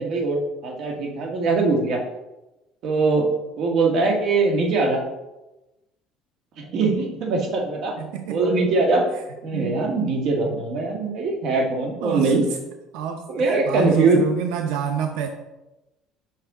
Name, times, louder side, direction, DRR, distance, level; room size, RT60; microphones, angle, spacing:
voice 1, 0.0-2.0 2.8-3.3 3.6-5.0 6.6-7.9 8.3-9.1 9.4-12.4 13.3-14.2, right 3 dB, 50° right, 1 dB, 1.5 m, -22 dB
voice 2, 8.0-8.4 9.5-9.9 12.0-12.6 12.9-15.3, right 8 dB, 85° right, 5 dB, 0.6 m, -28 dB
6.0 x 5.5 x 4.8 m, 0.99 s
cardioid pair, 160°, 0 cm